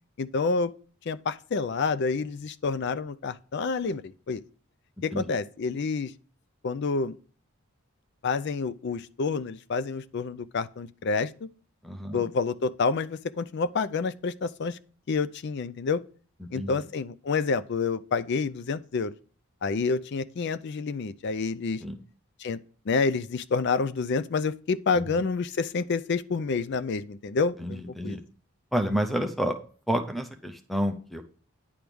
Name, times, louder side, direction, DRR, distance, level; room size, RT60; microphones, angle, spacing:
voice 1, 0.2-0.7 1.1-4.4 5.0-6.1 6.6-7.2 8.2-11.5 12.1-14.8 15.1-16.0 16.5-19.1 19.6-21.8 22.4-22.6 22.9-28.2, left 4 dB, 50° left, 0.4 m, -28 dB
voice 2, 11.8-12.3 16.4-16.8 21.8-22.0 24.9-25.2 27.6-28.2 28.7-29.6 29.9-31.2, equal, ahead, 0.6 m, -30 dB
10.0 x 3.5 x 6.0 m
head